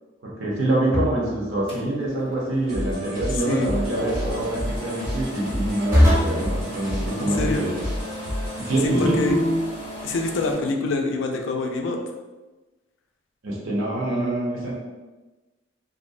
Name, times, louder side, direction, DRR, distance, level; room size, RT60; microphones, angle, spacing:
voice 1, 0.2-7.7 8.6-9.2 13.4-14.7, right 1 dB, 70° right, -4 dB, 0.7 m, -25 dB
sound 1, 0.9-1.4 3.9-4.4 5.9-6.5 8.9-9.6, left 1 dB, 15° right, 0.5 m, -21 dB
sound 2, 1.7-10.5, equal, 30° left, 0.6 m, -37 dB
sound 3, 2.7-8.7, equal, 90° right, 1.4 m, -31 dB
voice 2, 7.2-7.7 8.8-9.4 10.0-12.0, left 2 dB, 65° left, 3 dB, 0.3 m, -26 dB
2.5 x 2.0 x 2.5 m, 1.2 s
head